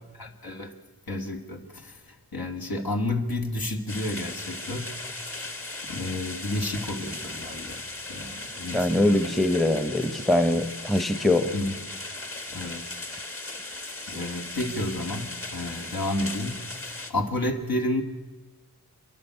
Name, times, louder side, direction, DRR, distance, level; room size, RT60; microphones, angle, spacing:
voice 1, 0.1-0.7 1.1-5.5 5.9-9.2 11.5-11.7 12.5-12.9 14.1-18.0, left 1 dB, 70° left, 2 dB, 2.4 m, -31 dB
sound 1, 3.9-17.1, left 2 dB, 35° left, 1.8 m, -37 dB
voice 2, 8.7-11.5, left 1 dB, ahead, 10 dB, 0.9 m, -23 dB
28.5 x 11.5 x 8.2 m, 1.3 s
wide cardioid pair, 90°, 38 cm